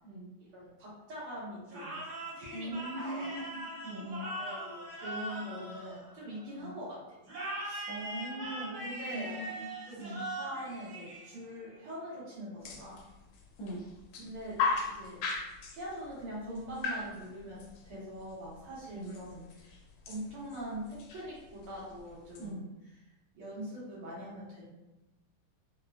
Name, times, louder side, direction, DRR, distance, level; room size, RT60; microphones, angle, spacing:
voice 1, 0.5-2.1 2.4-2.7 3.0-3.4 4.2-7.2 7.6-7.8 8.4-9.3 9.8-13.0 14.2-14.6 14.8-15.2 15.7-19.8 20.1-22.7 23.3-24.7, equal, 85° right, -7 dB, 2.2 m, -43 dB
sound 1, 1.7-6.5 7.2-11.7, right 1 dB, 55° right, 1.4 m, -41 dB
voice 2, 2.5-4.3 6.6-6.7 7.9-8.8 9.1-9.7 10.0-10.2 13.6-13.8 18.9-19.1 22.4-22.6, right 1 dB, 70° left, -6 dB, 1.6 m, -40 dB
sound 2, 12.6-22.5, left 4 dB, 85° left, 1.5 m, -39 dB
4.4 x 2.2 x 2.4 m, 0.98 s
omnidirectional pair, 2.4 m